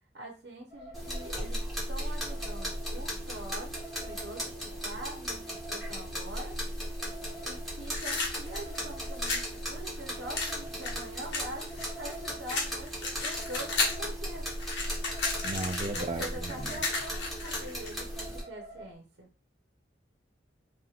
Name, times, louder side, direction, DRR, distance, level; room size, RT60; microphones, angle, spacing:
voice 1, 0.1-6.6 7.4-14.5 15.9-19.3, right 1 dB, 70° right, 0 dB, 0.9 m, -44 dB
sound 1, 0.7-18.9, right 1 dB, 40° left, 1.5 m, -50 dB
sound 2, 0.9-18.4, equal, ahead, 1.4 m, -37 dB
sound 3, 7.9-9.5 10.3-12.1 12.5-14.1 14.4-17.9, left 3 dB, 65° left, 1.1 m, -33 dB
voice 2, 15.4-16.8, right 2 dB, 35° right, 6 dB, 0.3 m, -35 dB
5.7 x 2.4 x 2.4 m, 0.32 s
head